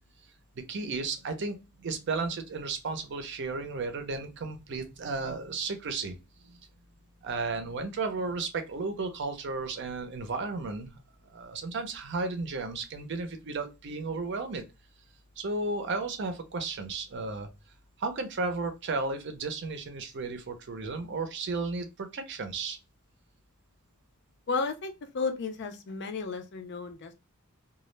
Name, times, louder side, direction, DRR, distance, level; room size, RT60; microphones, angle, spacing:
voice 1, 0.5-6.2 6.4-6.6 7.2-11.0 11.3-14.6 15.4-17.5 18.0-22.8, right 3 dB, 60° right, 0.5 m, -34 dB
voice 2, 24.5-27.1, left 4 dB, 55° left, 0.5 m, -33 dB
2.2 x 2.0 x 3.0 m
head